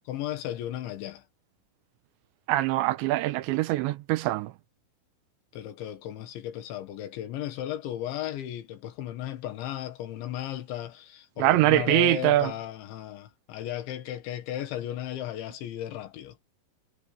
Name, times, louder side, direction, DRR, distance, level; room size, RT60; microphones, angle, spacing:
voice 1, 0.1-1.2 5.5-16.4, left 12 dB, 85° left, 4.1 m, -35 dB
voice 2, 2.5-4.5 11.4-12.5, right 16 dB, 90° right, 3.1 m, -23 dB
omnidirectional pair, 5.1 m